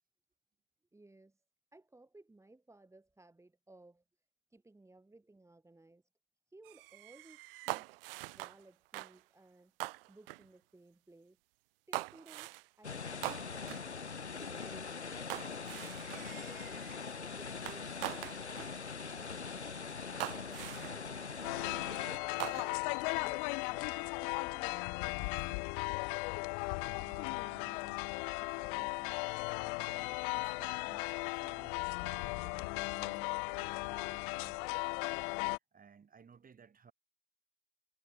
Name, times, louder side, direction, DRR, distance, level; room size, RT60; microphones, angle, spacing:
voice 1, 0.9-1.4 1.7-4.0 4.5-6.0 6.5-7.9 8.3-9.7 10.1-11.4 11.9-13.9 14.4-16.0 16.2-16.8 17.1-18.0 18.3-21.1 21.8-25.6, right 2 dB, 10° right, 2.8 m, -59 dB
sound 1, 6.6-8.6 8.9-9.2 9.8-10.5 11.9-12.7 13.2-13.9 15.3-17.0 17.7-18.8 19.5-19.6 20.2-21.0 22.4-22.9, right 21 dB, 60° right, 0.6 m, -43 dB
sound 2, 12.8-22.2, left 5 dB, 85° left, 1.1 m, -42 dB
sound 3, 21.4-35.6, left 32 dB, 50° left, 0.6 m, -37 dB
voice 2, 26.9-35.4 35.7-36.9, right 6 dB, 25° right, 7.4 m, -60 dB
figure-of-eight pair, 70°, 33 cm